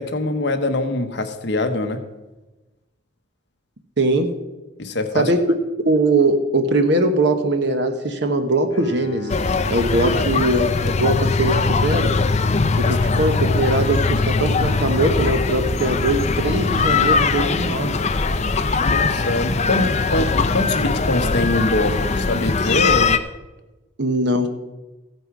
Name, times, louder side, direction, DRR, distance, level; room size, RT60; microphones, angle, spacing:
voice 1, 0.0-2.0 4.8-5.3 10.0-10.1 12.8-13.0 18.8-23.2, left 2 dB, 60° left, 7 dB, 1.0 m, -23 dB
voice 2, 4.0-4.3 5.1-5.5 5.8-9.4 9.7-12.1 12.8-18.0 24.0-24.5, right 2 dB, 60° right, 6 dB, 1.1 m, -21 dB
Bowed string instrument, 8.7-13.1, left 1 dB, 85° left, 1.3 m, -38 dB
sound 1, 9.3-23.2, left 4 dB, 35° left, 0.5 m, -20 dB
15.0 x 9.2 x 4.8 m, 1.1 s
head